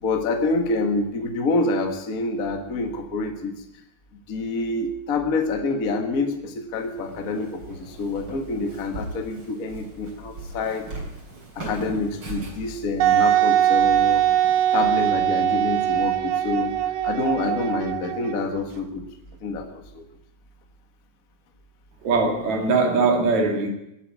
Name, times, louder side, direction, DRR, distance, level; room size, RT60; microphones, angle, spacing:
voice 1, 0.0-3.5 4.3-10.9 11.5-14.2 14.7-16.8 17.0-19.0 19.4-20.0, left 3 dB, 35° left, 5 dB, 1.6 m, -27 dB
Walk footsteps, 6.7-14.9, right 2 dB, 40° right, 4.0 m, -40 dB
Wind instrument woodwind instrument, 13.0-18.6, right 11 dB, 90° right, 2.3 m, -21 dB
voice 2, 22.0-23.7, right 3 dB, 70° right, 3 dB, 3.7 m, -21 dB
18.0 x 8.3 x 9.2 m, 0.82 s
omnidirectional pair, 3.3 m